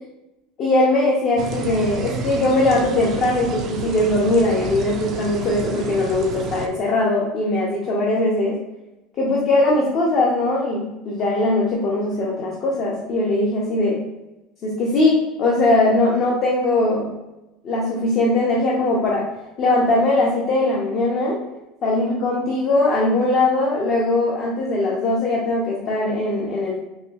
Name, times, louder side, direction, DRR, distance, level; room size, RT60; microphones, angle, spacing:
voice 1, 0.6-8.6 9.2-14.0 14.6-17.1 17.6-19.3 19.6-21.4 21.8-26.8, left 2 dB, 35° left, -4 dB, 0.7 m, -20 dB
sound 1, 1.4-6.7, right 4 dB, 35° right, 0.4 m, -31 dB
4.3 x 2.9 x 2.4 m, 0.97 s
cardioid pair, 170°, 0 cm